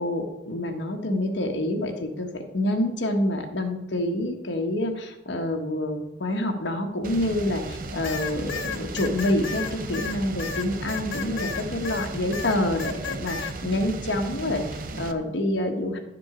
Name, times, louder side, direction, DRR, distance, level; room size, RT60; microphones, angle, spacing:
voice 1, 0.0-16.0, left 1 dB, 65° left, 3 dB, 1.4 m, -27 dB
sound 1, 7.0-15.1, right 2 dB, 45° right, 0.7 m, -36 dB
sound 2, 8.0-12.1 12.3-13.5, left 6 dB, 85° left, 0.8 m, -33 dB
11.0 x 7.4 x 5.0 m, 0.99 s
head